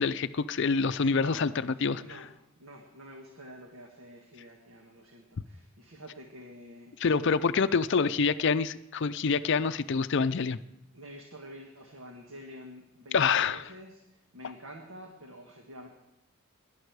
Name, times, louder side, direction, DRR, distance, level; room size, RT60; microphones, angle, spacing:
voice 1, 0.0-2.0 7.0-10.6 13.1-13.6, left 5 dB, 55° left, 13 dB, 0.5 m, -26 dB
voice 2, 1.0-1.4 1.9-2.3 2.6-7.0 10.9-15.9, equal, 75° right, 2 dB, 1.7 m, -48 dB
18.5 x 11.5 x 4.8 m, 0.86 s
head